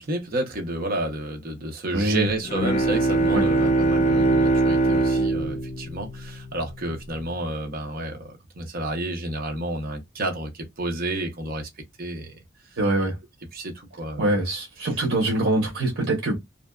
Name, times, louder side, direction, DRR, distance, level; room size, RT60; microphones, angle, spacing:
voice 1, 0.0-11.7 12.0-12.4 13.5-14.4, right 1 dB, 50° right, 0.8 m, -30 dB
voice 2, 1.9-2.3 3.3-3.4 12.8-13.2 14.2-16.4, right 1 dB, 85° right, 0.9 m, -23 dB
Bowed string instrument, 2.4-7.0, right 2 dB, 40° left, 0.6 m, -22 dB
2.6 x 2.2 x 2.2 m
head